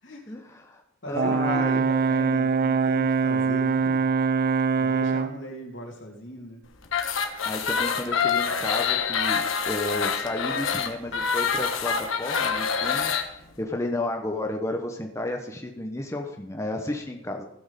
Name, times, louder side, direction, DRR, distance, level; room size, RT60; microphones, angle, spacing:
voice 1, 0.0-0.4 1.0-4.1 4.8-6.7, equal, 70° left, -1 dB, 2.8 m, -39 dB
voice 2, 0.6-1.9 7.4-17.5, left 2 dB, 15° left, 2 dB, 0.8 m, -32 dB
Brass instrument, 1.1-5.4, right 5 dB, 45° right, 0.4 m, -23 dB
sound 1, 6.8-13.3, left 6 dB, 90° left, 1.3 m, -26 dB
15.0 x 6.2 x 5.2 m, 0.84 s
head